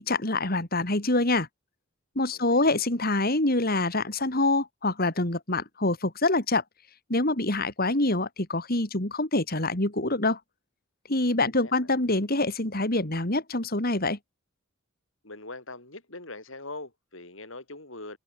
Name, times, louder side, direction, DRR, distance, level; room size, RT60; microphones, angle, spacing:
voice 1, 0.0-1.5 2.1-6.6 7.1-10.4 11.1-14.2, left 2 dB, 45° left, 3.4 m, -25 dB
voice 2, 2.3-2.7 11.4-11.9 15.2-18.2, left 2 dB, 65° left, 7.1 m, -42 dB
head